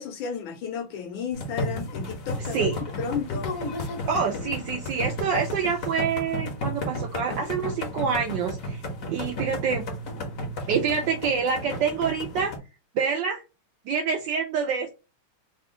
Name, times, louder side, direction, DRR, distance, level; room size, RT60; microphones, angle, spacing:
voice 1, 0.0-3.5, left 7 dB, 75° left, 1.2 m, -33 dB
sound 1, 1.3-12.6, equal, 60° left, 0.9 m, -33 dB
voice 2, 4.1-8.8 9.1-9.9 10.7-12.5 12.9-13.4 13.9-14.9, right 6 dB, 75° right, 1.0 m, -26 dB
3.5 x 2.3 x 3.5 m
omnidirectional pair, 2.4 m